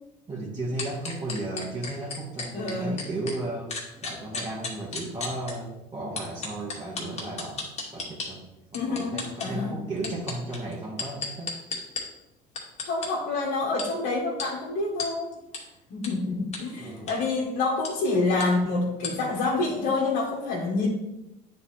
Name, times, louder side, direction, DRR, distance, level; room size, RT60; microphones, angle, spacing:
voice 1, 0.3-3.7 4.0-7.7 7.9-8.5 8.7-11.6 16.8-17.1, right 2 dB, 25° right, -5 dB, 1.9 m, -34 dB
sound 1, 0.8-3.3 3.7-5.5 6.2-8.3 8.7-9.5 10.0-12.0 12.5-13.1 13.8-13.9 14.4-14.5 15.0-15.1 15.5-15.6 16.0-16.1 16.5-16.6 17.0-17.2 17.8-17.9 18.4-18.5 19.0-19.1, left 4 dB, 40° left, 2.2 m, -33 dB
voice 2, 2.5-3.0 8.7-9.8 12.8-15.4 15.9-20.9, left 3 dB, 70° left, -4 dB, 1.7 m, -27 dB
9.0 x 4.2 x 4.4 m, 0.94 s
cardioid pair, 110°, 17 cm